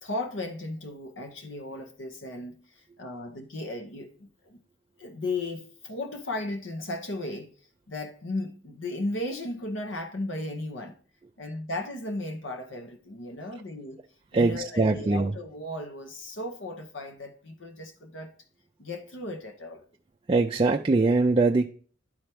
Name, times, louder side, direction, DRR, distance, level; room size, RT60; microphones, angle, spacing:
voice 1, 0.0-4.6 5.0-7.5 7.9-11.0 11.4-14.0 14.3-18.3 18.8-19.8, left 2 dB, 75° left, 0.9 m, -35 dB
voice 2, 14.3-15.3 20.3-21.7, right 3 dB, 25° right, 0.3 m, -22 dB
11.0 x 4.4 x 3.4 m
head